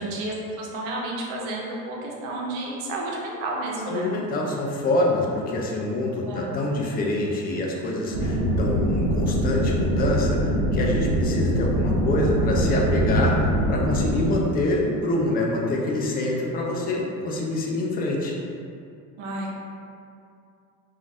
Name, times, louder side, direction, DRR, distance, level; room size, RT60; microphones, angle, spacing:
voice 1, 0.0-4.1 6.2-6.5 14.1-14.6 19.2-19.5, right 2 dB, 85° right, -2 dB, 0.7 m, -31 dB
voice 2, 3.9-18.4, left 2 dB, 25° left, -1 dB, 0.4 m, -26 dB
sound 1, 8.1-14.3, right 1 dB, 50° right, 0.8 m, -23 dB
2.6 x 2.3 x 3.3 m, 2.5 s
supercardioid pair, 100°, 40 cm